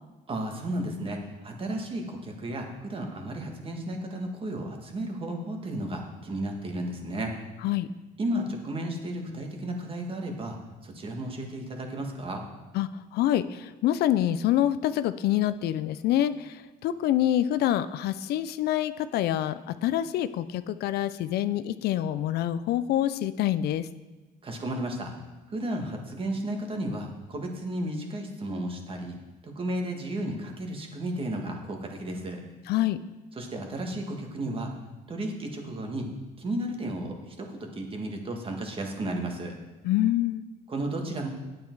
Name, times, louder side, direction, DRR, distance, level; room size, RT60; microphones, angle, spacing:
voice 1, 0.3-7.3 8.2-10.6 10.8-12.4 24.4-25.1 25.5-29.2 29.4-32.4 33.4-34.7 35.1-36.1 36.4-39.6 40.7-41.3, right 1 dB, 30° right, 2 dB, 1.7 m, -33 dB
voice 2, 12.7-23.9 32.7-33.0 39.8-40.4, left 12 dB, 70° left, 14 dB, 0.4 m, -26 dB
9.4 x 8.5 x 4.6 m, 1.2 s
cardioid pair, 110°, 17 cm